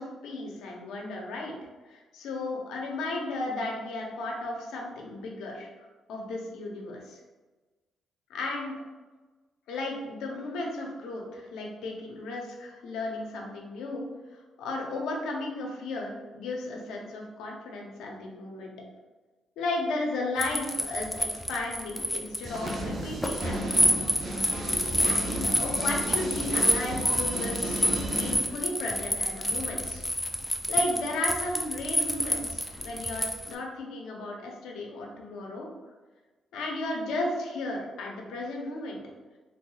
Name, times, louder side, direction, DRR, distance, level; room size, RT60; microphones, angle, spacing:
voice 1, 0.0-1.5 1.9-7.2 8.3-8.7 9.7-18.7 19.6-23.9 25.0-30.0 30.7-35.7 36.5-39.0, left 2 dB, 85° left, 0 dB, 0.7 m, -34 dB
sound 1, 20.4-33.5, left 1 dB, 10° left, 0.4 m, -28 dB
sound 2, 22.4-28.4, right 1 dB, 50° right, 0.7 m, -34 dB
3.6 x 2.8 x 2.3 m, 1.2 s
cardioid pair, 90°, 0 cm